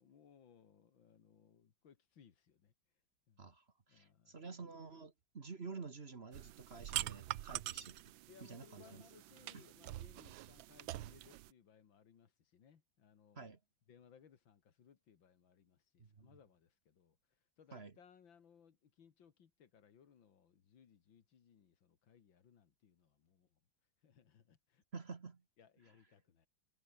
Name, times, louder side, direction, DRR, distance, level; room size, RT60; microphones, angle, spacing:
voice 1, 0.0-2.7 3.3-3.6 3.9-4.6 8.3-13.5 13.9-23.6 24.0-24.8 25.6-26.5, left 7 dB, 80° left, 2.5 m, -65 dB
voice 2, 3.4-8.1 8.4-9.0 9.5-9.6 13.3-13.6 16.0-16.3 17.7-17.9 24.9-25.4, right 4 dB, 35° right, 1.5 m, -50 dB
sound 1, 6.3-11.5, right 14 dB, 85° right, 1.5 m, -45 dB
omnidirectional pair, 2.1 m